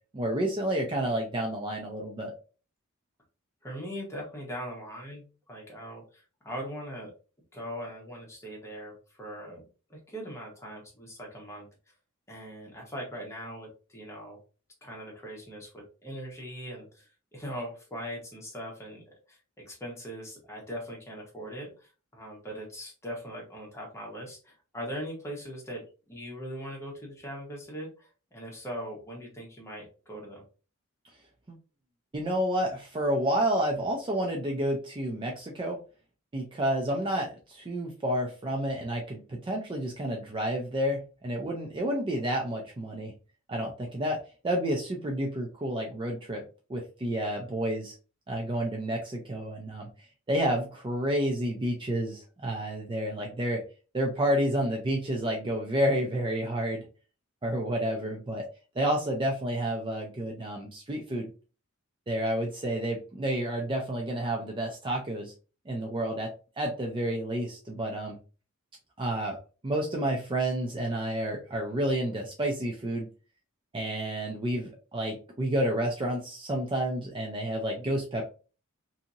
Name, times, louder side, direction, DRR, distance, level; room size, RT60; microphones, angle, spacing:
voice 1, 0.1-2.3 32.1-35.8 36.3-43.1 43.5-44.2 44.4-46.4 46.7-47.9 48.3-49.9 50.3-53.6 53.9-56.8 57.4-58.5 58.8-61.3 62.1-65.3 65.7-66.3 66.6-68.2 69.0-69.4 69.6-73.1 73.7-78.3, right 1 dB, 25° right, 0 dB, 0.4 m, -30 dB
voice 2, 3.6-7.1 7.5-9.6 9.9-11.7 12.3-14.4 14.8-19.0 19.3-30.4, equal, 15° left, -2 dB, 1.0 m, -40 dB
2.7 x 2.7 x 2.5 m, 0.34 s
head